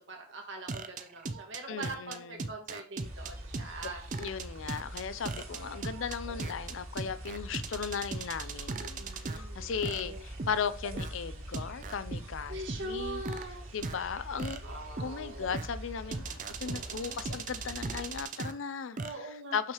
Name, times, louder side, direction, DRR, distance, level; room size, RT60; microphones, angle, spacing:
voice 1, 0.1-4.0 5.3-5.8 8.7-10.2 12.5-15.5 16.6-17.4 19.0-19.6, right 2 dB, 60° right, 1.7 m, -43 dB
sound 1, 0.7-9.4 9.8-11.1 11.5-12.2 12.7-13.4 13.8-13.9 14.4-15.7 16.1-18.5 19.0-19.1, right 3 dB, 40° right, 0.5 m, -37 dB
voice 2, 1.7-2.5 4.2-13.2 13.7-14.6 15.0-19.7, left 6 dB, 70° left, 0.5 m, -37 dB
sound 2, 3.0-18.2, right 1 dB, 80° right, 2.4 m, -44 dB
6.5 x 5.8 x 3.0 m
head